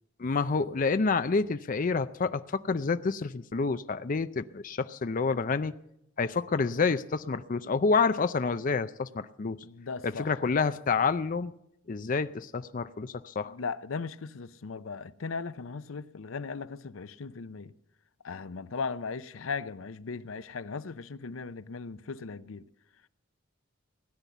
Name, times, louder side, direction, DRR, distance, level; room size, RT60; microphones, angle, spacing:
voice 1, 0.2-5.7 6.2-9.6 10.0-11.5 11.9-13.5, left 4 dB, 45° left, 0.5 m, -28 dB
voice 2, 9.6-10.3 13.4-17.7 18.2-22.7, left 4 dB, 85° left, 0.6 m, -37 dB
17.0 x 10.0 x 8.1 m
head